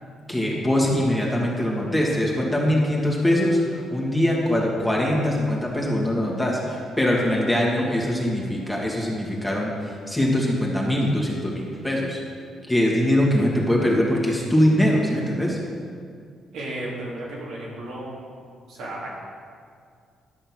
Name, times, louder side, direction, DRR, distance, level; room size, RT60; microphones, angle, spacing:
voice 1, 0.3-9.7 10.1-12.2 12.7-15.6, left 1 dB, 5° left, -3 dB, 2.4 m, -22 dB
voice 2, 16.5-18.2 18.7-19.1, right 1 dB, 80° right, -5 dB, 3.1 m, -33 dB
11.5 x 6.5 x 6.3 m, 2.2 s
cardioid pair, 90°, 0 cm